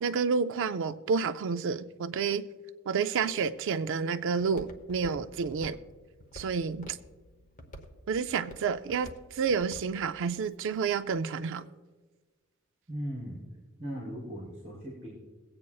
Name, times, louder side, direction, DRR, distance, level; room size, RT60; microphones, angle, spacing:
voice 1, 0.0-2.4 2.9-5.8 6.3-7.0 8.1-11.6, right 5 dB, 60° right, 0.4 m, -30 dB
Walk footsteps, 3.2-11.1, equal, 40° left, 1.0 m, -51 dB
voice 2, 12.9-13.4 13.8-15.1, equal, 35° right, 3.9 m, -38 dB
23.0 x 8.6 x 2.3 m
head